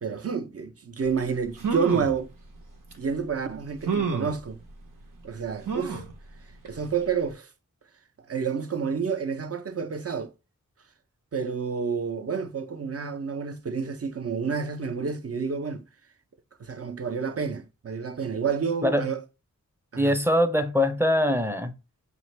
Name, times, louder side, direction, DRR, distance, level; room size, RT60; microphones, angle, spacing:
voice 1, 0.0-2.3 3.0-4.6 5.2-6.0 6.6-7.5 8.3-10.3 11.3-15.8 16.6-19.2 19.9-20.2, right 6 dB, 50° right, 0.6 m, -29 dB
sound 1, 1.2-1.3 1.6-2.2 2.9-3.0 3.8-4.4 5.7-6.1 6.6-6.7 7.0-7.1, right 5 dB, 80° right, 0.9 m, -29 dB
voice 2, 20.0-21.7, left 1 dB, 10° right, 0.6 m, -23 dB
5.7 x 2.5 x 3.1 m
wide cardioid pair, 65°, 32 cm